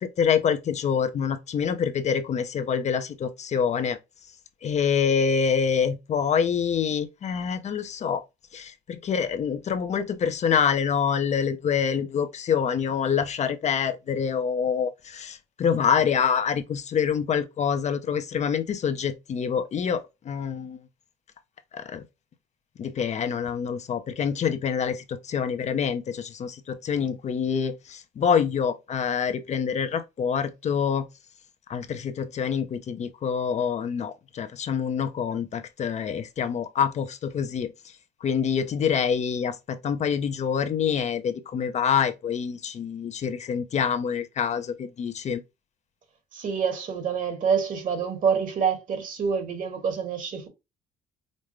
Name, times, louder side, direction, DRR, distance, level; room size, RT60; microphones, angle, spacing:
voice 1, 0.0-4.0 4.6-8.2 8.5-20.8 21.7-22.0 22.8-31.1 31.7-37.7 38.2-45.4, left 7 dB, 40° left, 0.6 m, -26 dB
voice 2, 46.3-50.5, right 6 dB, 50° right, 1.7 m, -27 dB
5.2 x 2.1 x 3.1 m
cardioid pair, 110°, 17 cm